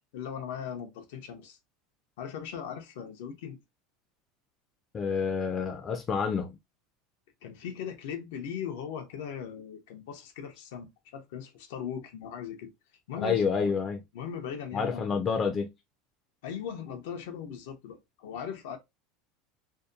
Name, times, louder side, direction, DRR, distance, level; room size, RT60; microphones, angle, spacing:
voice 1, 0.0-1.6 2.2-3.6 7.4-12.7 13.1-13.7 14.1-15.2 16.4-18.8, left 8 dB, 80° left, 0.5 m, -39 dB
voice 2, 4.9-6.5 13.2-14.0 14.7-15.7, left 5 dB, 20° left, 0.3 m, -28 dB
2.7 x 2.2 x 2.3 m
supercardioid pair, 165°, 0 cm